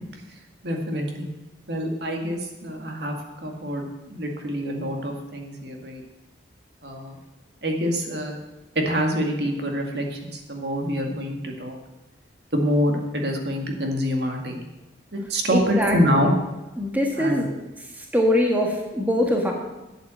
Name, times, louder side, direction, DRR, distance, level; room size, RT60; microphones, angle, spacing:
voice 1, 0.6-1.3 1.7-3.2 3.4-6.0 6.8-7.2 7.6-8.4 8.8-11.8 12.5-14.6 15.1-16.3 17.2-17.4, equal, 55° right, 2 dB, 2.1 m, -26 dB
voice 2, 15.5-16.3 16.8-17.5 17.9-19.5, left 1 dB, 10° right, 0 dB, 1.6 m, -23 dB
11.5 x 8.2 x 7.7 m, 1.1 s
head